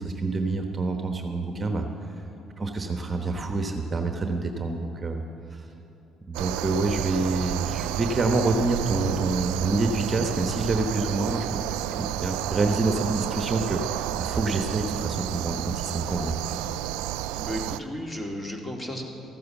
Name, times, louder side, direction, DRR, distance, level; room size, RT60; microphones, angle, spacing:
voice 1, 0.0-1.9 2.6-5.2 5.5-5.6 6.3-11.6 12.0-16.6, right 3 dB, 30° right, 5 dB, 1.1 m, -27 dB
sound 1, 6.3-17.8, right 13 dB, 85° right, 0.3 m, -31 dB
voice 2, 17.3-19.0, equal, 20° left, 1 dB, 2.3 m, -34 dB
14.0 x 9.4 x 7.2 m, 2.9 s
supercardioid pair, 70°, 0 cm